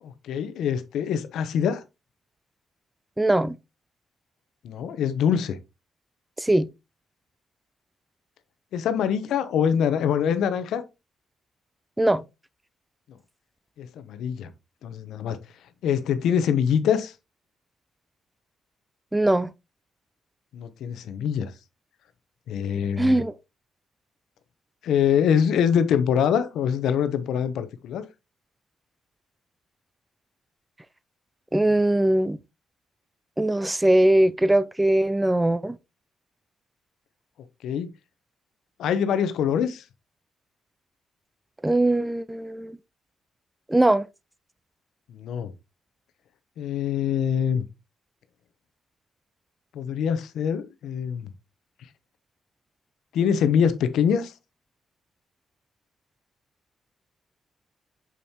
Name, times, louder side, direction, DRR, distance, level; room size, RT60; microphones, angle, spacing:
voice 1, 0.0-1.8 4.6-5.6 8.7-10.8 13.8-14.5 14.8-15.4 15.8-17.1 20.5-21.5 22.5-23.2 24.8-28.1 37.6-37.9 38.8-39.8 45.1-45.5 46.6-47.6 49.7-51.3 53.1-54.3, left 8 dB, 75° left, 0.7 m, -24 dB
voice 2, 3.2-3.6 6.4-6.7 12.0-12.2 19.1-19.5 23.0-23.3 31.5-32.4 33.4-35.8 41.6-42.8 43.7-44.0, right 1 dB, 10° right, 0.4 m, -21 dB
6.2 x 5.5 x 2.8 m
cardioid pair, 90°, 0 cm